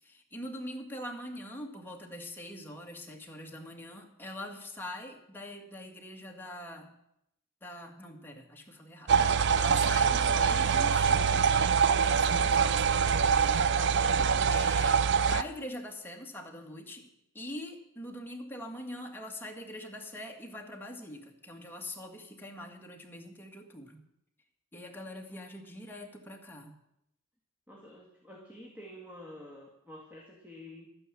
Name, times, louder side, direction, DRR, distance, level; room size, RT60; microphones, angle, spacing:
voice 1, 0.0-7.0 7.6-14.2 14.5-17.1 17.3-24.0 24.7-26.8, left 1 dB, 10° left, 1 dB, 1.9 m, -43 dB
sound 1, 9.1-15.4, right 6 dB, 60° right, 0.5 m, -24 dB
voice 2, 27.7-30.9, left 1 dB, 10° right, -1 dB, 2.0 m, -49 dB
12.5 x 9.7 x 7.6 m, 0.80 s
head